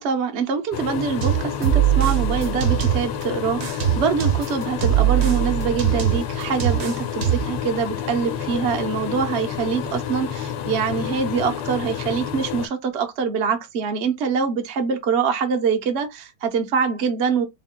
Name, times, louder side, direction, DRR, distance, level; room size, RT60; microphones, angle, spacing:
voice 1, 0.0-17.4, right 6 dB, 80° right, 0.5 m, -24 dB
sound 1, 0.7-12.7, left 9 dB, 80° left, 1.6 m, -30 dB
sound 2, 1.2-3.2 3.6-7.6, right 12 dB, 55° right, 0.7 m, -21 dB
4.5 x 3.6 x 2.2 m
omnidirectional pair, 2.4 m